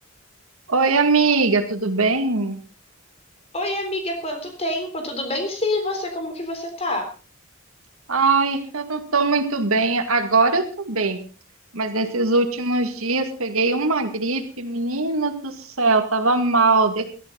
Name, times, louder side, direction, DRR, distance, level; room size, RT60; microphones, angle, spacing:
voice 1, 0.7-2.6 8.1-11.2 11.7-17.1, right 3 dB, 85° right, 7 dB, 2.1 m, -21 dB
voice 2, 3.5-7.1, left 1 dB, 30° left, 4 dB, 3.7 m, -27 dB
17.5 x 13.5 x 4.0 m, 0.37 s
head